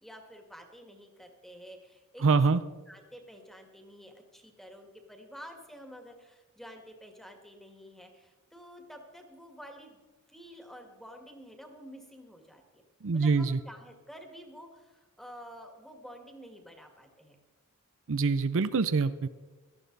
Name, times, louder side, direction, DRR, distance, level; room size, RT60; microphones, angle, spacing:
voice 1, 0.0-2.6 2.9-10.0 10.3-12.8 13.1-17.4, equal, ahead, 3 dB, 2.0 m, -50 dB
voice 2, 2.2-2.6 13.0-13.6 18.1-19.3, right 4 dB, 65° right, 12 dB, 0.6 m, -25 dB
17.5 x 13.0 x 4.0 m, 1.2 s
head